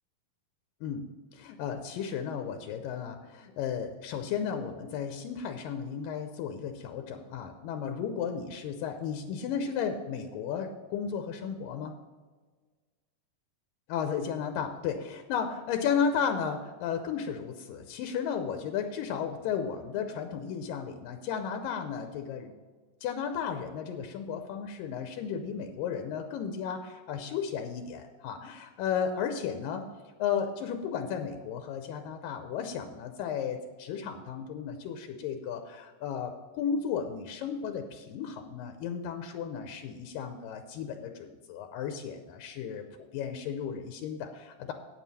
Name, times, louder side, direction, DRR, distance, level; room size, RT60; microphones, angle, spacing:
voice 1, 0.8-11.9 13.9-22.5 23.0-29.9 30.2-44.7, left 7 dB, 80° left, 6 dB, 2.3 m, -34 dB
9.3 x 9.2 x 4.2 m, 1.4 s
omnidirectional pair, 4.2 m